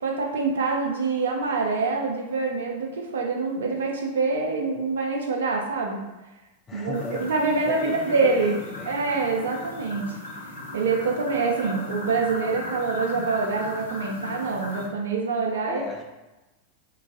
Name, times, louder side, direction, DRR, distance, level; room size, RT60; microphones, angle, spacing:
voice 1, 0.0-6.0 6.7-8.6 8.9-10.2 10.7-15.8, right 4 dB, 65° right, 0 dB, 0.5 m, -25 dB
voice 2, 6.7-7.3 7.8-9.0 15.7-16.0, left 4 dB, 20° left, -1 dB, 0.6 m, -35 dB
sound 1, 6.9-14.9, left 2 dB, 70° left, 0.7 m, -37 dB
2.4 x 2.3 x 3.7 m, 1.0 s
figure-of-eight pair, 90°, 0 cm